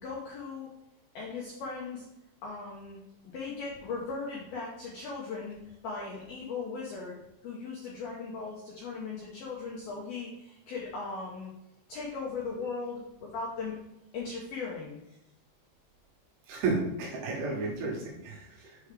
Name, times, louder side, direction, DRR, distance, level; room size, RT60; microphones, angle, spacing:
voice 1, 0.0-0.7 1.1-2.1 2.4-3.0 3.3-5.6 5.8-11.5 11.9-13.8 14.1-15.0, left 4 dB, 80° left, -3 dB, 2.2 m, -38 dB
voice 2, 16.5-18.8, right 3 dB, 75° right, -2 dB, 3.4 m, -32 dB
7.7 x 4.6 x 3.4 m, 0.86 s
omnidirectional pair, 5.7 m